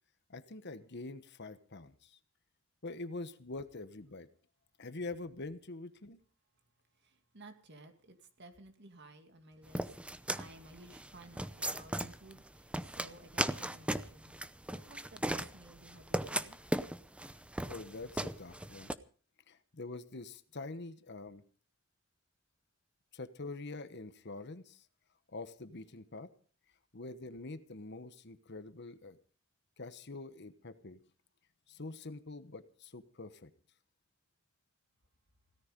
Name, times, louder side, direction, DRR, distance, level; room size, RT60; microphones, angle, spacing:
voice 1, 0.3-2.2 2.8-4.3 4.8-6.2 17.7-19.0 19.5-21.4 23.1-24.9 25.3-26.3 26.9-29.2 29.8-31.0 31.7-33.5, left 3 dB, 55° left, 11 dB, 1.2 m, -45 dB
voice 2, 7.0-10.0 10.4-14.3 14.7-16.6, right 2 dB, 55° right, 6 dB, 2.5 m, -55 dB
sound 1, 9.7-18.9, right 1 dB, 5° right, 0.7 m, -37 dB
17.0 x 14.0 x 5.2 m, 0.41 s
head